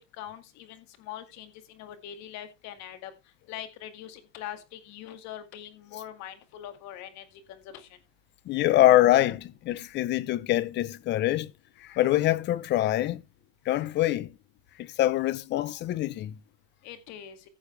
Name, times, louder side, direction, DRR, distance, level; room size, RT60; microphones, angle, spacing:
voice 1, 0.1-3.1 3.5-7.9 16.8-17.4, left 11 dB, 50° left, 2.1 m, -42 dB
voice 2, 8.5-11.5 11.8-13.2 13.7-14.3 15.0-16.3, left 14 dB, 30° left, 0.6 m, -24 dB
15.0 x 7.2 x 3.2 m
supercardioid pair, 150°, 37 cm